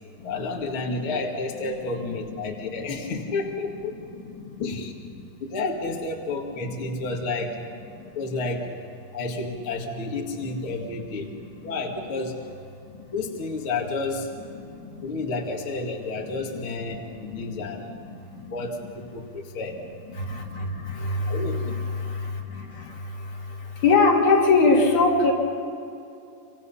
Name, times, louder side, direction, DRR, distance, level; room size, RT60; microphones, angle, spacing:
voice 1, 0.2-3.9 4.6-4.9 5.4-7.6 8.1-8.7 9.1-11.3 11.6-12.4 13.1-14.3 15.0-17.0 17.3-18.0 18.5-19.8 21.3-21.8, left 3 dB, 45° left, 0 dB, 2.7 m, -30 dB
voice 2, 20.3-20.7 21.0-21.4 23.8-25.3, left 3 dB, 70° left, -1 dB, 4.1 m, -19 dB
28.0 x 25.5 x 5.7 m, 2.7 s
omnidirectional pair, 3.6 m